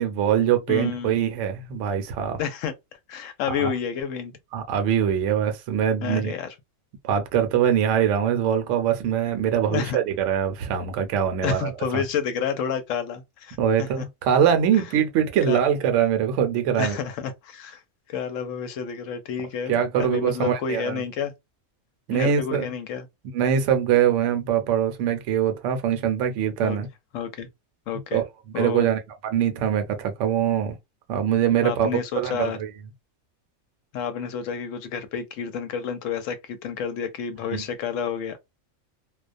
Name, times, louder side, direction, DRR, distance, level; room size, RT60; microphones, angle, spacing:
voice 1, 0.0-2.4 3.6-3.7 4.5-6.3 7.0-12.0 13.6-17.0 19.7-21.0 22.1-22.6 23.3-26.9 28.1-28.2 28.6-30.7 31.1-32.7 37.5-37.6, right 9 dB, 70° right, 0.9 m, -23 dB
voice 2, 0.7-1.2 2.4-2.7 3.1-4.3 6.0-6.5 9.6-10.0 11.4-14.1 14.7-14.8 15.5-15.6 16.8-17.8 18.1-21.3 22.1-23.1 26.6-26.8 27.1-27.5 27.9-28.2 28.5-28.9 31.6-32.6 33.9-38.4, left 7 dB, 70° left, 0.9 m, -30 dB
2.3 x 2.1 x 2.5 m
omnidirectional pair, 1.4 m